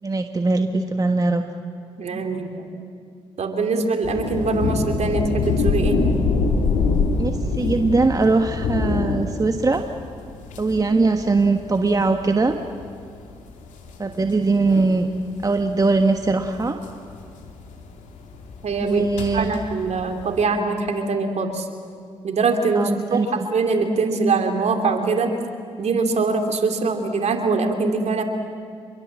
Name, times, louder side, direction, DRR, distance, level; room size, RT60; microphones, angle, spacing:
voice 1, 0.0-1.4 7.2-9.8 10.6-12.5 14.0-15.1 15.4-16.8 18.8-19.5 22.7-23.5, right 3 dB, 25° right, 6 dB, 1.4 m, -21 dB
voice 2, 2.0-2.6 3.4-6.0 18.6-19.1 19.3-21.7 22.2-25.3 25.8-28.2, right 4 dB, 55° right, 4 dB, 3.1 m, -23 dB
sound 1, 4.0-20.4, left 4 dB, 75° left, 2.7 m, -26 dB
27.0 x 22.0 x 7.6 m, 2.3 s
hypercardioid pair, 45°, 13 cm